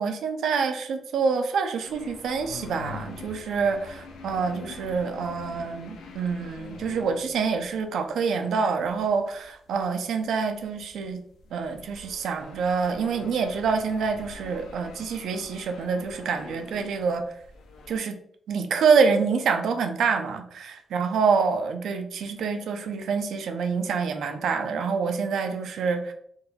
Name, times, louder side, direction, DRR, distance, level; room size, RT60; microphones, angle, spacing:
voice 1, 0.0-11.2 11.5-17.2 17.9-18.2 18.5-26.1, right 5 dB, 80° right, 6 dB, 0.4 m, -26 dB
sound 1, 1.9-7.9 8.8-18.0, left 4 dB, 90° left, 0.5 m, -44 dB
3.8 x 2.6 x 2.2 m, 0.67 s
cardioid pair, 125°, 0 cm